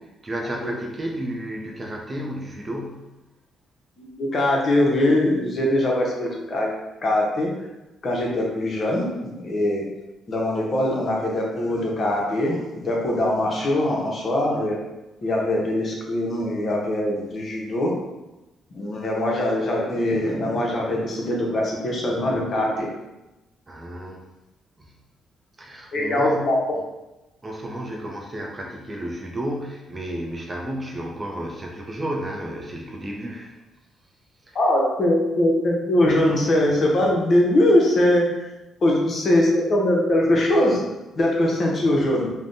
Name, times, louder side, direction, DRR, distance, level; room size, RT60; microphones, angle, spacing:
voice 1, 0.0-3.1 23.7-24.2 24.8-25.0 25.6-26.5 26.7-26.8 27.4-33.5 34.4-34.6, right 1 dB, 25° right, 0 dB, 0.5 m, -32 dB
voice 2, 4.0-6.7 7.0-7.5 8.0-9.0 9.3-9.9 10.3-14.8 15.2-17.9 18.7-22.9 25.9-26.6 34.5-38.2 38.8-40.8 41.2-42.3, left 1 dB, 45° left, -2 dB, 0.7 m, -22 dB
3.3 x 2.1 x 2.6 m, 1.0 s
cardioid pair, 90°, 0 cm